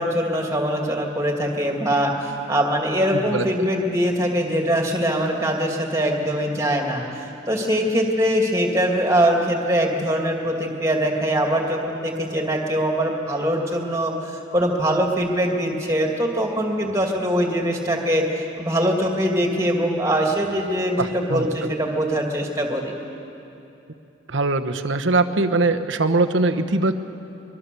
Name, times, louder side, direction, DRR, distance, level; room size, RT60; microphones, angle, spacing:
voice 1, 0.0-2.1 2.5-18.3 18.6-22.9, equal, 15° right, 1 dB, 2.4 m, -22 dB
voice 2, 3.1-3.5 21.0-21.7 24.3-26.9, right 3 dB, 80° right, 7 dB, 1.1 m, -22 dB
23.5 x 22.0 x 6.9 m, 2.8 s
head